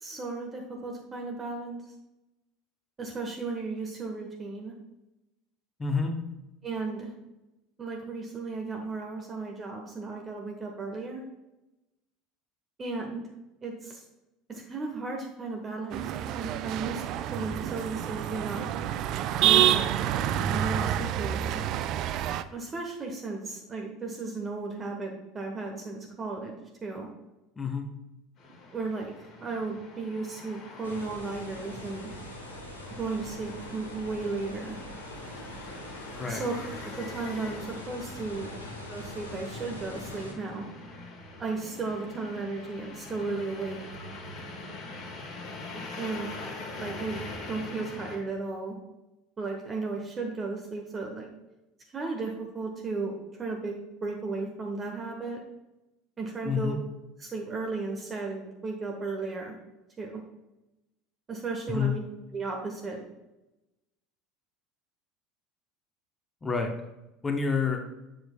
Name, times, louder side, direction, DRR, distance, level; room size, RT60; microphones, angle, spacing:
voice 1, 0.0-1.8 3.0-4.7 6.6-7.1 7.8-11.2 12.8-13.2 13.6-14.0 14.5-16.0 16.3-18.6 19.4-20.0 20.5-21.6 22.5-26.6 26.8-27.1 28.7-29.1 29.4-32.1 33.0-34.8 36.2-36.5 37.0-38.5 38.9-40.6 41.4-43.8 45.7-46.4 46.8-47.2 47.5-48.7 49.4-51.3 51.9-53.1 53.4-55.4 56.2-56.7 57.2-59.6 60.0-60.2 61.3-62.0 62.3-63.0, right 3 dB, 30° right, 1 dB, 1.1 m, -35 dB
voice 2, 5.8-6.2 27.6-27.9 36.2-36.4 56.4-56.8 61.7-61.9 66.4-66.7 67.2-67.8, left 5 dB, 20° left, 4 dB, 1.0 m, -28 dB
sound 1, 15.9-22.4, right 11 dB, 50° right, 0.3 m, -27 dB
sound 2, 28.4-48.2, left 2 dB, 40° left, 1.6 m, -43 dB
sound 3, 30.8-40.3, left 1 dB, 85° left, 1.1 m, -43 dB
7.8 x 6.9 x 2.3 m, 0.96 s
figure-of-eight pair, 70°, 0 cm